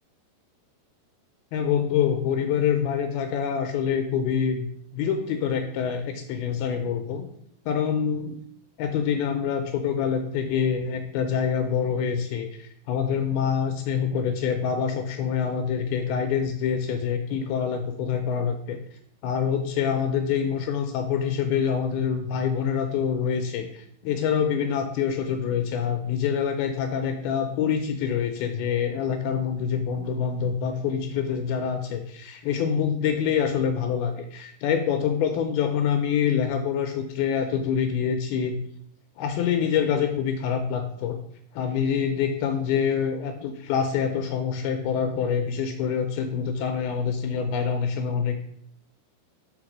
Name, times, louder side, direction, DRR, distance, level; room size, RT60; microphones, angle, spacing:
voice 1, 1.5-4.7 4.9-7.3 7.7-8.4 8.8-18.8 19.2-38.6 39.2-41.2 41.5-48.4, left 7 dB, 80° left, 6 dB, 2.4 m, -26 dB
5.7 x 5.1 x 6.0 m, 0.67 s
omnidirectional pair, 4.7 m